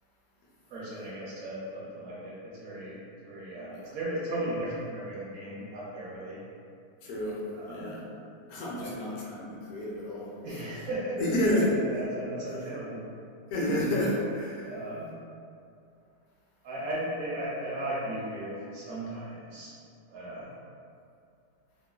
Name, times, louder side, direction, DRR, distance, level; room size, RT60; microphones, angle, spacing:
voice 1, 0.7-6.4 7.5-7.9 8.8-8.9 10.4-11.2 11.6-13.0 14.7-15.1 16.6-19.7 20.1-20.5, right 1 dB, 65° right, -7 dB, 0.8 m, -36 dB
voice 2, 7.0-7.4 7.7-8.0 8.5-10.3 11.2-11.7 13.5-14.7, left 1 dB, 65° left, -5 dB, 1.0 m, -30 dB
3.1 x 2.2 x 2.2 m, 2.5 s
omnidirectional pair, 1.8 m